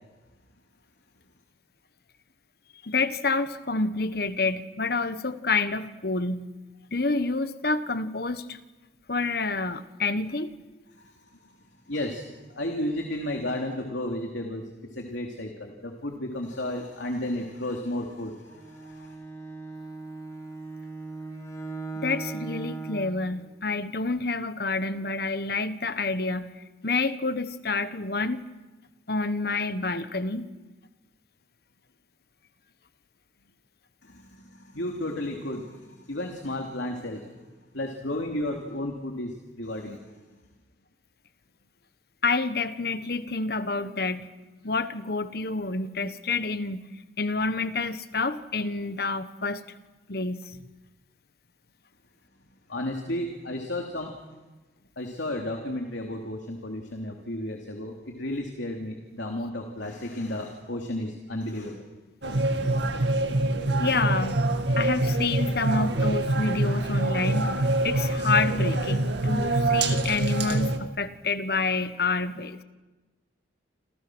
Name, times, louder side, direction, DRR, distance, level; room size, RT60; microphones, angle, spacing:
voice 1, 2.8-6.5 6.9-8.6 9.1-10.5 21.9-26.5 26.8-28.4 29.1-30.5 42.2-44.3 44.6-46.8 47.2-49.6 50.1-50.6 63.8-64.4 64.8-67.5 67.8-72.6, left 3 dB, 55° left, 11 dB, 1.3 m, -28 dB
voice 2, 10.9-11.5 11.9-14.6 14.9-19.1 34.0-37.3 37.7-40.0 52.7-54.1 55.0-61.9, left 1 dB, 75° left, 2 dB, 3.0 m, -33 dB
Bowed string instrument, 18.5-23.2, right 3 dB, 15° left, 4.2 m, -38 dB
sound 1, 62.2-70.8, right 2 dB, 70° right, 2.2 m, -25 dB
29.0 x 27.0 x 6.3 m, 1.2 s
head